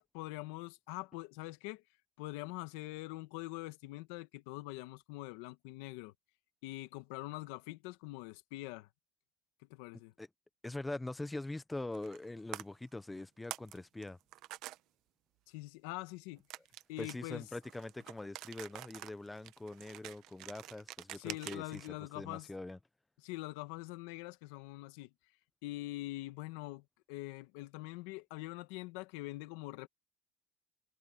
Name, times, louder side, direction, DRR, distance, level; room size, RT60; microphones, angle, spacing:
voice 1, 0.0-1.8 2.2-6.1 6.6-8.9 9.7-10.1 15.5-16.4 16.9-17.4 21.1-22.5 23.2-25.1 25.6-29.9, left 19 dB, 85° left, 1.3 m, -44 dB
voice 2, 10.6-14.2 17.0-22.8, left 2 dB, 5° left, 0.6 m, -43 dB
sound 1, 11.9-12.3 12.5-12.6 13.2-13.8 14.0-14.8 16.5-21.9, right 16 dB, 55° right, 0.8 m, -47 dB
cardioid pair, 160°, 0 cm